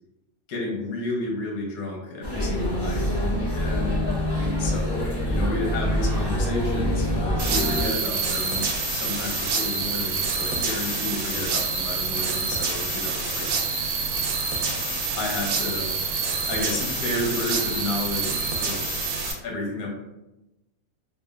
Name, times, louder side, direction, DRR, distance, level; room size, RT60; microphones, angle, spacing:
voice 1, 0.5-3.1 3.5-4.0 4.6-8.7 8.9-13.5 15.2-15.9 16.5-18.9 19.4-19.9, left 2 dB, 90° left, 0 dB, 1.1 m, -31 dB
sound 1, 2.2-7.8, equal, 40° left, 0.3 m, -25 dB
sound 2, 7.4-19.3, right 4 dB, 75° right, 1.0 m, -27 dB
3.1 x 2.1 x 2.2 m, 0.97 s
omnidirectional pair, 1.5 m